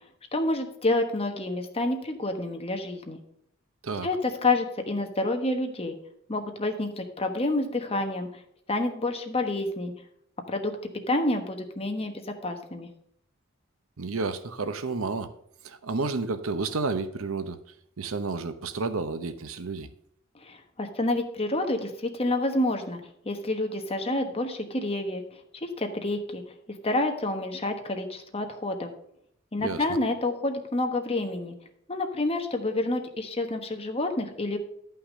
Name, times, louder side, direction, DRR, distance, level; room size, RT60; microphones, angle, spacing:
voice 1, 0.3-3.2 4.0-6.0 6.3-8.3 8.7-9.9 10.5-10.7 11.1-12.9 20.4-23.0 23.2-25.2 25.6-26.4 26.8-28.9 29.5-31.5 31.9-34.6, left 2 dB, 30° left, 1.2 m, -28 dB
voice 2, 14.0-15.3 15.6-17.6 18.0-19.9 29.6-29.8, right 3 dB, 75° right, 0.8 m, -31 dB
11.5 x 5.8 x 5.1 m
head